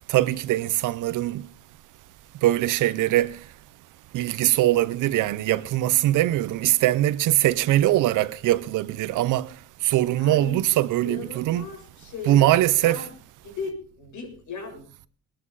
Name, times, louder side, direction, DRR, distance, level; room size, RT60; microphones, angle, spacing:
voice 1, 0.1-1.5 2.4-3.4 4.1-9.5 9.8-11.7 12.2-13.1, right 14 dB, 85° right, 0.9 m, -22 dB
voice 2, 10.2-10.7 11.0-13.1 13.4-15.1, left 4 dB, 80° left, 7.5 m, -37 dB
22.0 x 13.0 x 4.1 m
cardioid pair, 90°, 30 cm